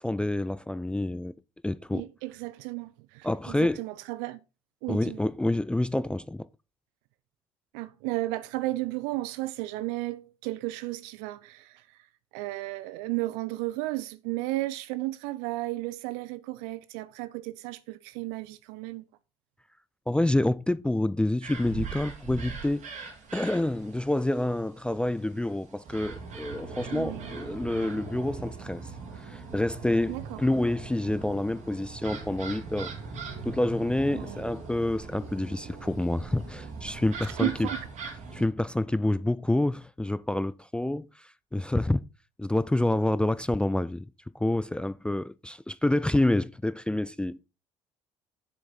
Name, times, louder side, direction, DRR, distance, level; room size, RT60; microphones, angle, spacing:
voice 1, 0.0-1.3 1.6-2.1 3.2-3.8 4.9-6.5 20.1-22.8 23.3-28.8 29.2-32.9 33.4-37.7 38.3-42.0 42.4-44.1 44.3-47.4, left 1 dB, 5° left, 0.3 m, -28 dB
voice 2, 1.9-4.4 4.8-5.2 7.7-12.0 12.3-19.1 26.9-27.3 30.1-30.4 34.1-34.4 37.3-37.8, right 19 dB, 70° right, 0.5 m, -34 dB
sound 1, 21.4-38.5, right 5 dB, 55° right, 2.8 m, -41 dB
7.0 x 6.9 x 4.2 m
hypercardioid pair, 55°, 15 cm